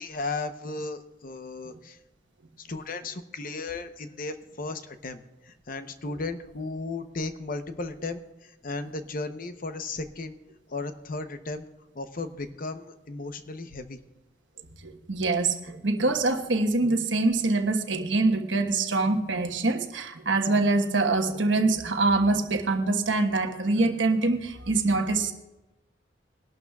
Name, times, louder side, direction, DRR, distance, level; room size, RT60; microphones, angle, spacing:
voice 1, 0.0-2.0 2.6-10.4 10.7-11.6 11.9-14.0, left 3 dB, 50° left, 9 dB, 0.8 m, -35 dB
voice 2, 14.8-25.3, right 3 dB, 75° right, 5 dB, 1.2 m, -24 dB
22.0 x 12.0 x 2.3 m, 1.0 s
head